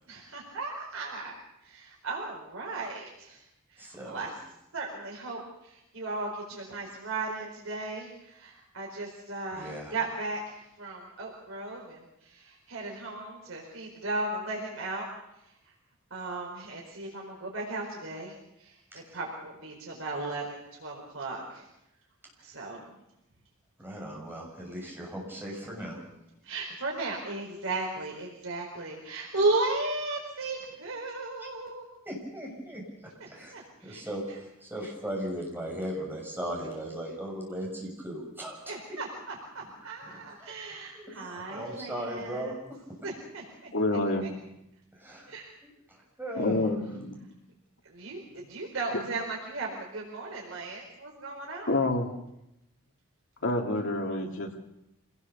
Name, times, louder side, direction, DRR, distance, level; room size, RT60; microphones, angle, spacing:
voice 1, 0.1-1.4 1.6-3.4 3.7-4.3 4.7-15.1 16.1-21.6 22.4-22.8 26.4-31.8 33.2-34.0 38.7-42.5 43.0-43.7 44.2-44.3 45.3-45.5 47.8-51.8, right 2 dB, 70° right, -1 dB, 4.6 m, -36 dB
voice 2, 3.8-4.3 9.5-10.0 18.9-19.2 23.8-26.0 31.4-31.5 32.0-39.0 40.0-40.6 40.9-42.8 44.9-46.7, right 1 dB, 10° right, -1 dB, 6.7 m, -38 dB
voice 3, 43.7-44.3 46.4-47.2 51.7-52.1 53.4-54.6, left 2 dB, 65° left, 1 dB, 2.9 m, -28 dB
26.0 x 18.5 x 7.0 m, 0.85 s
head